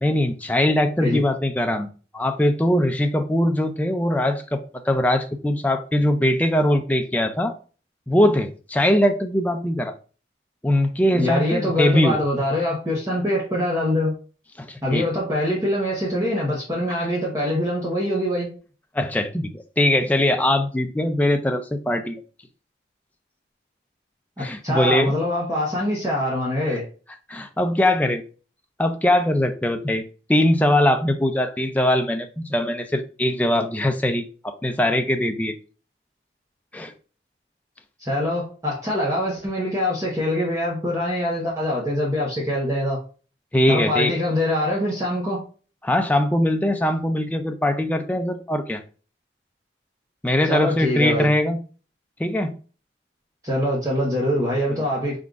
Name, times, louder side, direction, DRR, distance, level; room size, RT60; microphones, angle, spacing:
voice 1, 0.0-7.6 8.1-9.9 10.6-12.2 14.6-15.1 18.9-22.2 24.4-25.1 26.7-26.8 27.3-28.2 28.8-35.5 36.7-36.9 43.5-44.1 45.8-48.8 50.2-51.6 52.2-52.5, left 1 dB, 10° left, 0.4 m, -21 dB
voice 2, 11.1-14.1 14.8-18.5 24.4-26.8 38.0-43.0 43.7-45.4 50.5-51.3 53.4-55.2, left 1 dB, 20° right, 0.9 m, -24 dB
4.3 x 3.7 x 2.4 m
head